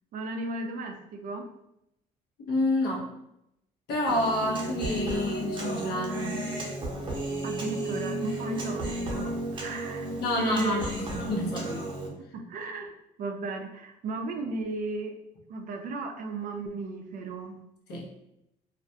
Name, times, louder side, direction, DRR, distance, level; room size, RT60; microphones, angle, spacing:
voice 1, 0.1-1.5 7.4-10.1 10.4-10.9 12.3-12.9 13.2-15.1 15.5-17.5, right 2 dB, 55° right, 6 dB, 0.4 m, -34 dB
voice 2, 2.4-3.1 3.9-6.3 10.2-11.9 17.9-18.1, left 1 dB, 75° left, -2 dB, 0.8 m, -29 dB
Human voice, 4.1-12.1, right 1 dB, 30° right, 0.7 m, -33 dB
2.4 x 2.1 x 2.7 m, 0.83 s
cardioid pair, 110°, 17 cm